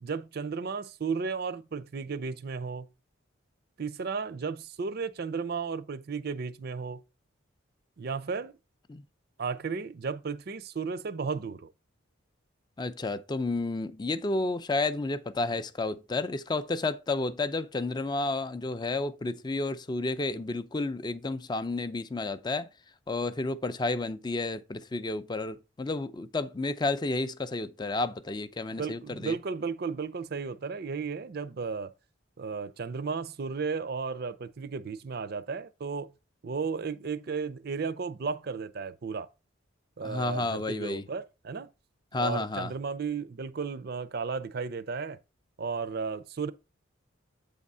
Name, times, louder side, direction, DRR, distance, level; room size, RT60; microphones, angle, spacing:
voice 1, 0.0-2.9 3.8-7.0 8.0-8.5 9.4-11.7 28.7-31.9 32.4-36.1 36.4-39.3 40.0-41.7 42.1-45.2 45.6-46.5, right 5 dB, 50° right, 0.5 m, -34 dB
voice 2, 12.8-22.7 23.1-29.4 40.0-41.0 42.1-42.7, left 2 dB, 20° left, 0.4 m, -31 dB
8.0 x 3.6 x 5.4 m
head